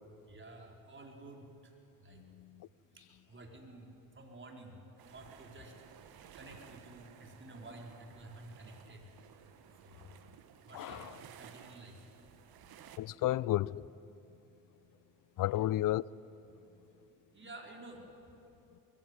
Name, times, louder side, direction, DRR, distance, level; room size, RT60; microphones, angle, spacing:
voice 1, 0.3-1.7 2.0-2.2 2.9-4.8 5.1-5.8 6.1-9.1 9.8-10.2 10.7-12.1 15.5-15.7 16.5-16.6 17.3-18.0, right 2 dB, 30° right, 4.4 m, -52 dB
voice 2, 2.4-2.7 10.7-11.1 13.0-13.8 15.4-16.0, left 14 dB, 50° left, 0.6 m, -32 dB
sound 1, 5.0-13.0, right 9 dB, 60° right, 1.5 m, -56 dB
21.5 x 16.0 x 9.8 m
hypercardioid pair, 60°, 40 cm